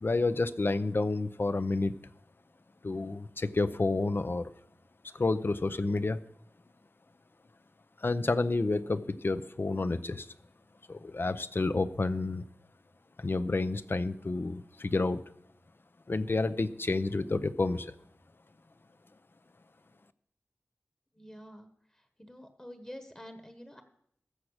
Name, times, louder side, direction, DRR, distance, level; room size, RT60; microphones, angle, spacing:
voice 1, 0.0-1.9 2.8-4.5 5.1-6.2 8.0-10.3 10.9-12.4 13.2-15.2 16.1-17.9, left 3 dB, 50° left, 14 dB, 0.6 m, -30 dB
voice 2, 21.2-21.7 22.2-23.8, equal, 15° left, 7 dB, 1.3 m, -47 dB
14.5 x 6.1 x 6.5 m, 0.72 s
wide cardioid pair, 65°, 5 cm